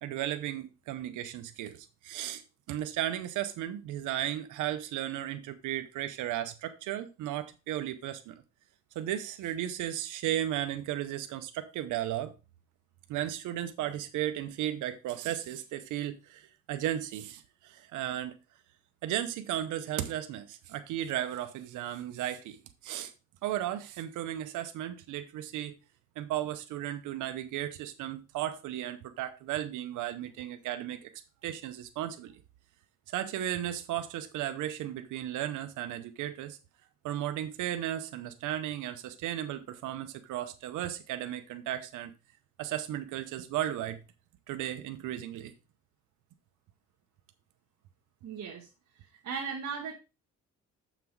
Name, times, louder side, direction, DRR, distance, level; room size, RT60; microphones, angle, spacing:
voice 1, 0.0-2.4 2.7-8.4 9.0-12.3 13.1-18.4 19.0-22.6 22.8-23.1 23.4-25.7 26.2-31.1 31.4-32.3 33.1-36.6 37.0-42.1 42.6-44.0 44.5-45.5, right 12 dB, 90° right, 0.8 m, -35 dB
voice 2, 48.2-48.7 49.0-49.9, right 6 dB, 60° right, 1.6 m, -37 dB
7.0 x 6.0 x 4.6 m
cardioid pair, 90°, 30 cm